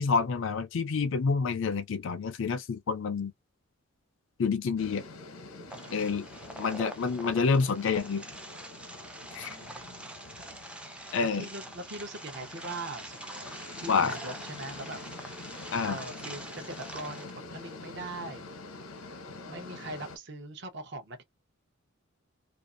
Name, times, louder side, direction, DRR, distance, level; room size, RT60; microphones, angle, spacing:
voice 1, 0.0-3.3 4.4-5.0 5.9-6.2 6.6-8.2 9.3-9.5 11.1-11.4 13.9-14.1 15.7-16.0, left 5 dB, 60° left, 0.4 m, -28 dB
sound 1, 4.8-20.2, left 3 dB, 90° left, 0.8 m, -46 dB
sound 2, 5.7-17.3, right 1 dB, 5° right, 0.4 m, -45 dB
voice 2, 5.7-6.1 9.2-10.1 10.4-10.5 11.3-13.5 13.8-15.4 15.9-18.4 19.5-21.2, right 2 dB, 55° right, 0.7 m, -42 dB
2.5 x 2.4 x 2.5 m
head